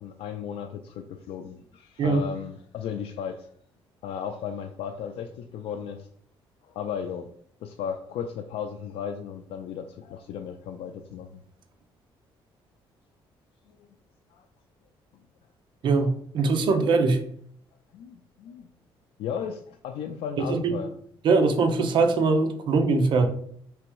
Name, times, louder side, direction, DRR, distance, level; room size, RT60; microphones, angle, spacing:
voice 1, 0.0-3.5 4.0-6.1 6.6-7.3 7.6-11.4 13.7-13.8 14.3-14.5 17.9-18.7 19.2-21.0, left 7 dB, 90° left, 4 dB, 0.4 m, -35 dB
voice 2, 15.8-17.2 20.5-20.8 21.2-23.3, right 4 dB, 55° right, 7 dB, 0.7 m, -22 dB
3.3 x 3.0 x 4.7 m, 0.63 s
cardioid pair, 145°, 9 cm